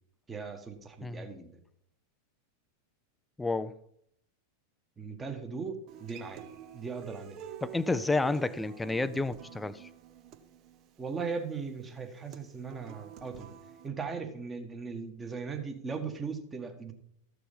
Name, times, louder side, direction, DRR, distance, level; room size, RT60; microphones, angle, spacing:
voice 1, 0.3-1.6 5.0-6.4 6.7-7.4 11.0-13.5 13.8-16.9, right 5 dB, 15° right, 1.5 m, -38 dB
voice 2, 3.4-3.8 7.6-9.9, left 3 dB, 10° left, 0.5 m, -30 dB
Human voice / Acoustic guitar, 5.9-13.9, right 9 dB, 35° right, 0.9 m, -49 dB
13.5 x 6.8 x 5.3 m
figure-of-eight pair, 90°, 0 cm